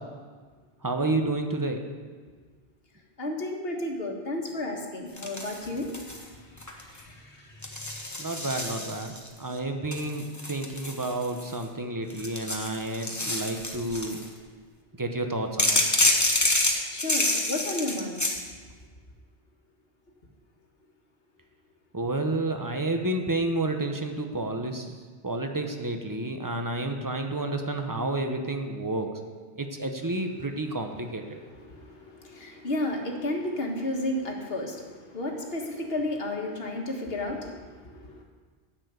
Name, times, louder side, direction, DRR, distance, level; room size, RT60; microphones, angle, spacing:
voice 1, 0.8-1.8 8.2-14.2 15.0-15.8 21.9-24.9 25.2-29.1 29.6-31.2, right 2 dB, 20° right, 5 dB, 0.9 m, -30 dB
voice 2, 3.2-5.9 16.9-18.2 32.4-34.7 35.1-37.5, left 1 dB, 60° left, 1 dB, 1.7 m, -31 dB
sound 1, 5.2-6.2 6.6-7.0 7.6-9.3 9.9-11.6 12.1-14.3 15.6-18.4, left 1 dB, 15° left, 1.0 m, -27 dB
10.0 x 6.8 x 8.1 m, 1.5 s
omnidirectional pair, 1.1 m